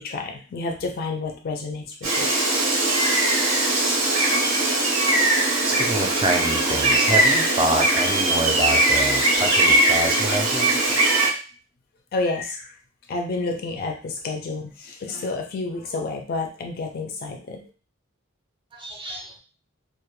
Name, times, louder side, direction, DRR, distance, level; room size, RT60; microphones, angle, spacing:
voice 1, 0.0-2.3 12.1-12.7 13.1-17.6, left 3 dB, 45° left, 3 dB, 0.4 m, -30 dB
Gull seagull, 2.0-11.3, right 2 dB, 70° right, 0.8 m, -20 dB
voice 2, 5.6-10.7 18.7-19.4, right 1 dB, 25° right, 2 dB, 0.4 m, -26 dB
2.2 x 2.1 x 3.0 m, 0.36 s
head